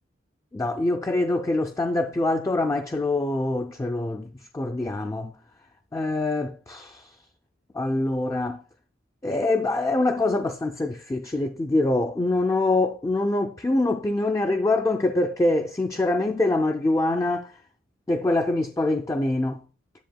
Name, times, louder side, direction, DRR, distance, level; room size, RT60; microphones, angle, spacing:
voice 1, 0.5-5.3 5.9-7.2 7.7-8.6 9.2-17.6 18.1-19.6, left 2 dB, 15° left, 0.3 m, -24 dB
10.5 x 7.5 x 2.2 m
head